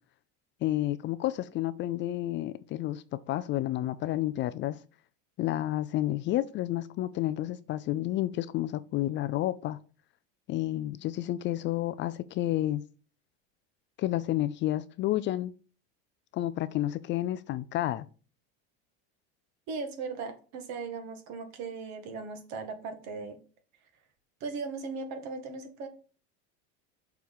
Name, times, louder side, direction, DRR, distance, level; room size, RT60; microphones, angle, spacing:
voice 1, 0.6-4.8 5.4-9.8 10.5-12.8 14.0-15.5 16.3-18.1, left 14 dB, 35° left, 0.4 m, -30 dB
voice 2, 19.7-23.4 24.4-25.9, right 4 dB, 60° right, 1.9 m, -38 dB
6.6 x 4.6 x 5.4 m
supercardioid pair, 135°, 32 cm